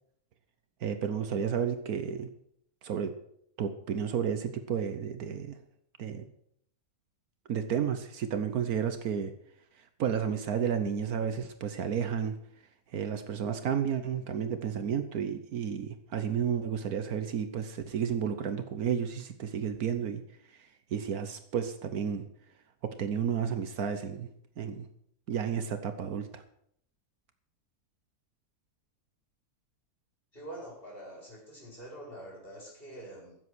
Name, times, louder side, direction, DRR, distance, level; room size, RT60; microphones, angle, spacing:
voice 1, 0.8-2.3 2.8-3.1 3.6-5.6 6.0-6.2 7.5-9.3 10.0-12.4 12.9-20.2 20.6-22.2 22.8-24.3 24.6-24.9 25.3-26.4, right 7 dB, 75° right, 9 dB, 1.4 m, -32 dB
voice 2, 30.3-33.3, right 1 dB, 35° left, -2 dB, 4.7 m, -45 dB
15.5 x 7.7 x 6.2 m, 0.69 s
omnidirectional pair, 1.6 m